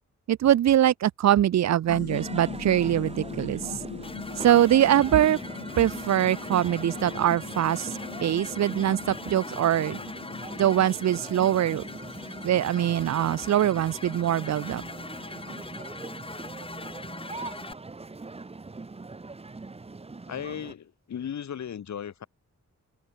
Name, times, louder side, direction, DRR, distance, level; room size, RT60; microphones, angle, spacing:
voice 1, 0.3-3.6 4.4-5.4 5.8-7.9 8.2-10.0 10.6-11.8 12.4-14.8, right 11 dB, 65° right, 0.6 m, -23 dB
sound 1, 1.9-15.6, left 8 dB, 55° left, 1.6 m, -42 dB
sound 2, 2.1-20.7, right 3 dB, 20° right, 1.8 m, -41 dB
sound 3, 4.0-17.7, left 3 dB, 20° left, 1.6 m, -42 dB
voice 2, 20.3-22.3, left 8 dB, 70° left, 2.7 m, -36 dB
open air
wide cardioid pair, 175°, 29 cm